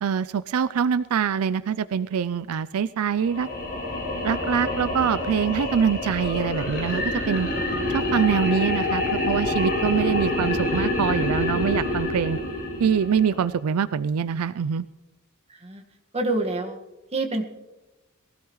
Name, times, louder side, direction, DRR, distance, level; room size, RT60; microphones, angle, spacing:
voice 1, 0.0-3.5 4.2-7.5 7.9-12.4 12.8-14.9, right 7 dB, 85° right, 15 dB, 0.4 m, -24 dB
sound 1, 3.2-13.5, left 2 dB, 45° left, 4.6 m, -27 dB
voice 2, 15.5-15.8 16.1-16.8 17.1-17.4, right 2 dB, 30° right, 3 dB, 1.7 m, -27 dB
22.0 x 16.0 x 3.1 m, 1.0 s
head